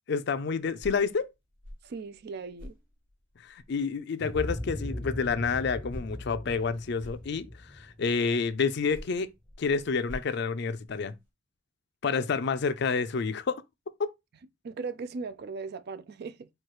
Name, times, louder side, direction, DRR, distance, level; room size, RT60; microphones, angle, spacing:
voice 1, 0.1-1.3 3.4-9.3 9.6-11.1 12.0-13.6, left 5 dB, 60° left, 0.5 m, -29 dB
sound 1, 0.7-4.0 4.3-7.8 8.6-11.3, left 1 dB, 75° right, 2.3 m, -49 dB
voice 2, 1.8-2.7 14.6-16.5, right 4 dB, 55° right, 0.4 m, -38 dB
sound 2, 4.2-9.0, left 1 dB, 10° left, 0.5 m, -38 dB
4.5 x 2.4 x 4.6 m
head